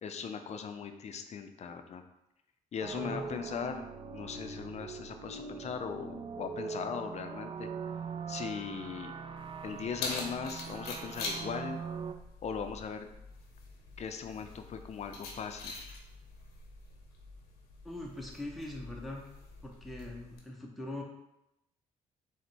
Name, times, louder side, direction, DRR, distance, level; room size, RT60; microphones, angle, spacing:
voice 1, 0.0-2.1 2.7-7.7 8.3-9.1 9.6-11.8 12.4-13.1 14.0-15.7, left 6 dB, 45° left, 7 dB, 0.5 m, -39 dB
sound 1, 2.8-12.1, right 5 dB, 35° right, 0.3 m, -42 dB
Keys jangling, 9.4-20.4, left 3 dB, 85° left, 0.7 m, -45 dB
voice 2, 17.8-19.3 19.6-21.0, left 1 dB, ahead, -1 dB, 0.7 m, -42 dB
3.8 x 2.1 x 4.4 m, 0.87 s
supercardioid pair, 65°, 16 cm